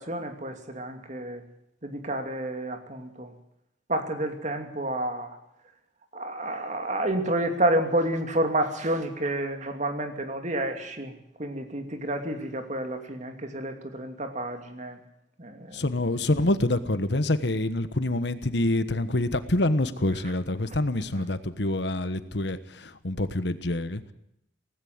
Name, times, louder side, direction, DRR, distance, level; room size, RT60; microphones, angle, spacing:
voice 1, 0.0-1.4 1.8-3.3 3.9-5.4 6.1-11.1 11.4-15.0 15.4-15.8, right 1 dB, 40° right, 6 dB, 2.7 m, -29 dB
voice 2, 15.7-24.1, left 1 dB, 65° left, 12 dB, 1.3 m, -26 dB
18.0 x 16.0 x 9.5 m, 0.80 s
head